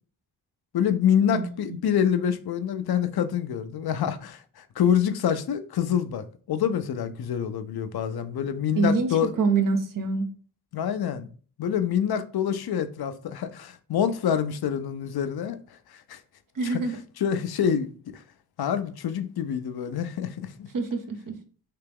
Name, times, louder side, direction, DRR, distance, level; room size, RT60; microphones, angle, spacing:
voice 1, 0.7-9.3 10.7-11.3 11.6-16.2 16.6-16.8 17.2-18.2 18.6-20.7, left 8 dB, 65° left, 0.5 m, -26 dB
voice 2, 1.3-1.7 8.8-10.3 16.6-17.0 20.7-21.4, right 4 dB, 50° right, 0.8 m, -26 dB
3.3 x 2.9 x 3.5 m
cardioid pair, 60°, 42 cm